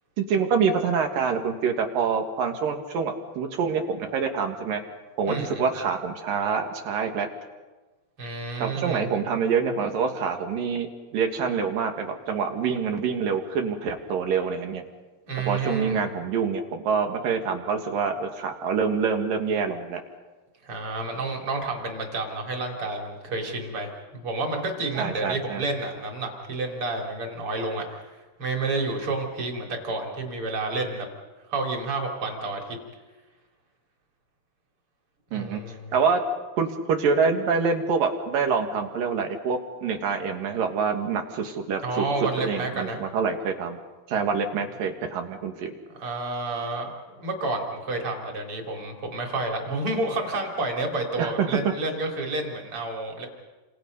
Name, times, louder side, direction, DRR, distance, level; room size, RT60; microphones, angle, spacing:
voice 1, 0.2-4.8 5.2-7.3 8.6-14.8 15.4-20.0 25.0-25.6 35.3-35.6 35.9-36.2 36.6-42.1 42.4-43.8 44.1-45.7 51.2-51.6, right 5 dB, 60° right, 5 dB, 3.1 m, -26 dB
voice 2, 5.3-5.6 8.2-9.1 15.3-16.0 20.6-28.0 28.4-31.1 31.5-32.8 35.3-35.9 41.8-43.0 46.0-53.3, right 2 dB, 35° right, 2 dB, 3.6 m, -30 dB
30.0 x 26.5 x 5.4 m, 1.2 s
omnidirectional pair, 4.9 m